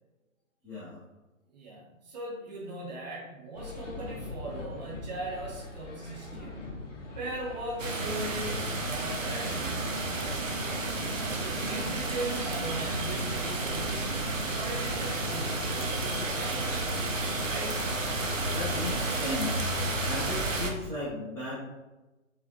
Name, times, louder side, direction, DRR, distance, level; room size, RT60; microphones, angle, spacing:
voice 1, 0.6-1.0 18.4-19.7 20.0-21.7, left 2 dB, 5° left, -12 dB, 0.8 m, -36 dB
voice 2, 1.5-6.6 7.1-10.6 11.1-16.8 17.5-17.8, right 2 dB, 30° right, -3 dB, 0.9 m, -39 dB
sound 1, 3.6-20.2, left 2 dB, 65° left, 1.0 m, -44 dB
sound 2, 7.8-20.7, right 2 dB, 70° right, 0.8 m, -31 dB
5.1 x 2.4 x 2.7 m, 1.1 s
figure-of-eight pair, 135°, 40 cm